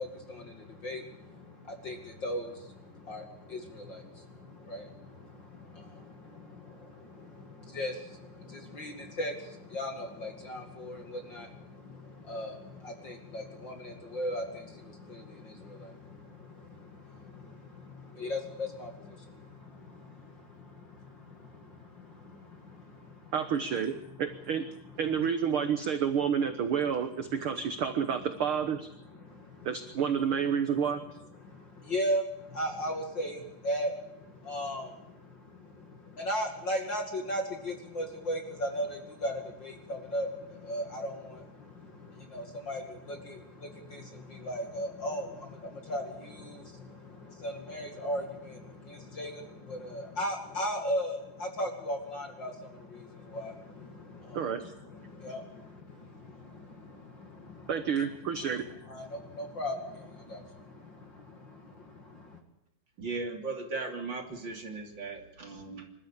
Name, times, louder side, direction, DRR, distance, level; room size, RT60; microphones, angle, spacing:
voice 1, 0.0-23.3 29.1-29.7 31.4-57.7 58.0-58.1 58.5-62.4, equal, 35° left, 3 dB, 2.6 m, -38 dB
voice 2, 23.3-23.9 24.2-24.6 25.0-28.9 29.6-31.0 54.3-54.6 57.7-58.6, right 7 dB, 60° right, 8 dB, 1.5 m, -29 dB
voice 3, 63.0-65.9, right 3 dB, 35° right, 2 dB, 3.4 m, -37 dB
26.5 x 13.5 x 8.4 m, 0.84 s
omnidirectional pair, 3.9 m